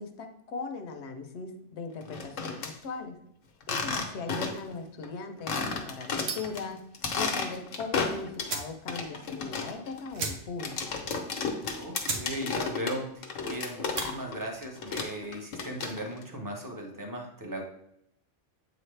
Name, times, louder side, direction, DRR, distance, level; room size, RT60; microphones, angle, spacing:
voice 1, 0.0-3.1 3.7-6.8 7.1-10.8, left 4 dB, 65° left, 5 dB, 1.0 m, -39 dB
sound 1, 2.0-2.7 3.6-4.7 5.0-5.1 5.5-6.6 6.9-8.6 8.9-14.4 14.6-16.2, left 4 dB, 85° left, 1.2 m, -33 dB
sound 2, 6.2-6.6 8.0-8.1 8.4-8.8 9.2-9.3 9.5-9.6 10.1-10.7 11.1-11.2 11.7-11.8 12.0-12.3 12.6-13.0 13.8-14.1, right 4 dB, 75° right, 1.3 m, -35 dB
voice 2, 11.7-17.6, equal, 15° right, 1 dB, 0.9 m, -37 dB
8.0 x 4.0 x 3.3 m, 0.74 s
omnidirectional pair, 1.3 m